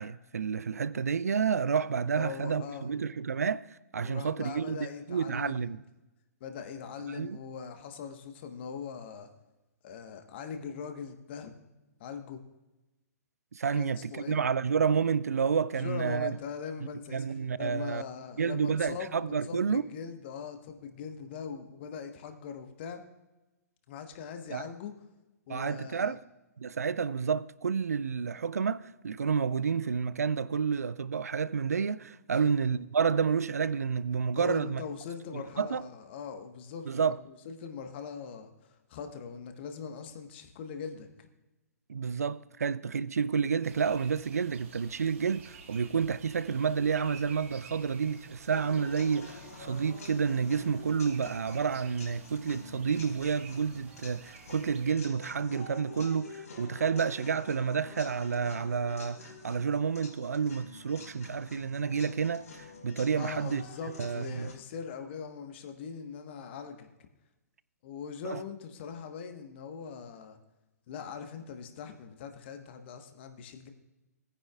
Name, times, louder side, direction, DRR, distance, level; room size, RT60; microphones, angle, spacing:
voice 1, 0.0-3.7 3.9-4.8 5.1-5.8 7.1-7.4 13.5-16.3 17.1-18.0 18.4-19.8 24.5-24.6 25.5-26.2 26.6-34.8 35.3-35.8 36.9-37.2 41.9-63.6 64.0-64.5 68.2-68.4, right 6 dB, 70° right, 0.4 m, -30 dB
voice 2, 2.0-2.9 4.0-5.8 6.4-9.3 9.8-11.5 12.0-12.4 13.7-14.4 15.7-17.2 17.6-19.1 19.5-23.0 23.9-24.9 25.5-26.2 32.3-32.6 34.3-41.1 63.2-66.9 67.8-70.4 70.9-73.7, left 6 dB, 40° left, 1.3 m, -41 dB
sound 1, 43.6-54.9, right 4 dB, 50° right, 1.6 m, -51 dB
sound 2, 48.5-64.5, left 3 dB, 70° left, 4.9 m, -48 dB
20.0 x 9.9 x 2.4 m
figure-of-eight pair, 120°, 9 cm